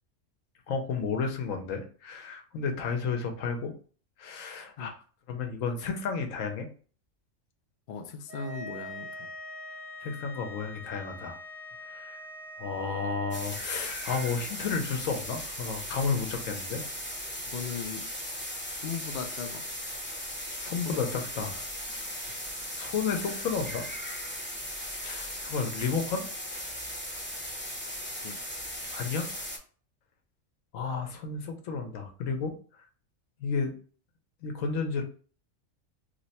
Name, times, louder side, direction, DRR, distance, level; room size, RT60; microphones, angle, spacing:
voice 1, 0.7-3.7 4.2-4.9 5.3-6.7 10.0-11.4 11.9-12.2 12.6-16.8 20.6-21.6 21.9-22.1 22.6-23.8 25.0-26.2 28.9-29.3 30.7-32.6 33.4-33.7 34.4-35.0, left 5 dB, 80° left, 1.1 m, -32 dB
voice 2, 7.9-9.3 17.5-18.1 18.7-19.7 20.8-21.2 28.2-28.4, left 6 dB, 65° left, 0.5 m, -38 dB
sound 1, 8.3-13.4, equal, 65° right, 0.9 m, -43 dB
sound 2, 13.3-29.6, equal, 10° left, 0.6 m, -37 dB
3.0 x 2.1 x 4.1 m
omnidirectional pair, 1.4 m